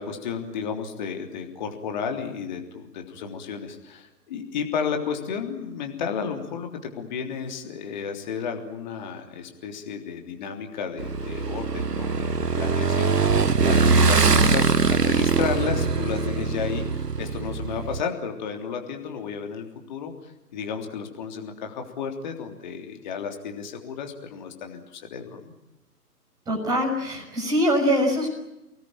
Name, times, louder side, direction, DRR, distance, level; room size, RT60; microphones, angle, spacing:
voice 1, 0.0-25.5, left 6 dB, 30° left, 4 dB, 3.4 m, -33 dB
Motorcycle / Engine, 11.0-18.0, right 4 dB, 75° right, 1.2 m, -22 dB
voice 2, 13.8-14.5 26.5-28.3, equal, 10° right, -1 dB, 6.1 m, -24 dB
29.5 x 20.0 x 9.0 m, 0.93 s
figure-of-eight pair, 140°, 47 cm